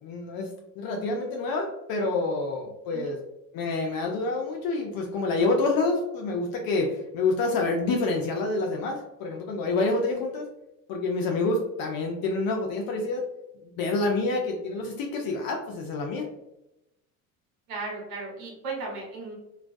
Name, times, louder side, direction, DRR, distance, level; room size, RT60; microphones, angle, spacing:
voice 1, 0.0-3.2 3.5-10.5 10.9-13.2 13.8-16.3, left 3 dB, 55° left, 1 dB, 0.5 m, -27 dB
voice 2, 17.7-19.3, right 3 dB, 80° right, -2 dB, 1.1 m, -36 dB
2.3 x 2.2 x 2.5 m, 0.90 s
supercardioid pair, 85°, 44 cm